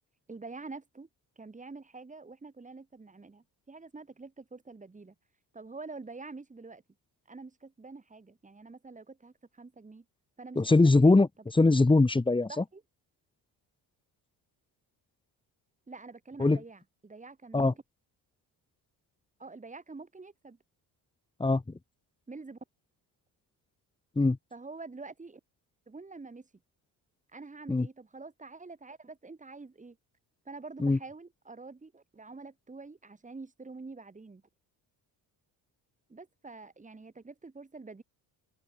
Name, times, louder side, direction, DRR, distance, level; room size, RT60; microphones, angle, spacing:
voice 1, 0.3-1.1 1.4-5.1 5.5-6.8 7.3-10.0 10.4-11.2 12.5-12.8 15.9-17.8 19.4-20.6 22.3-22.6 24.5-25.4 25.9-26.5 27.3-30.0 30.4-34.4 36.1-38.0, right 3 dB, 20° right, 6.7 m, -46 dB
voice 2, 10.6-12.6 16.4-16.6 17.5-17.7 21.4-21.6 24.2-24.4 27.7-27.9 30.8-31.0, left 3 dB, 15° left, 2.0 m, -22 dB
open air
cardioid pair, 145°, 39 cm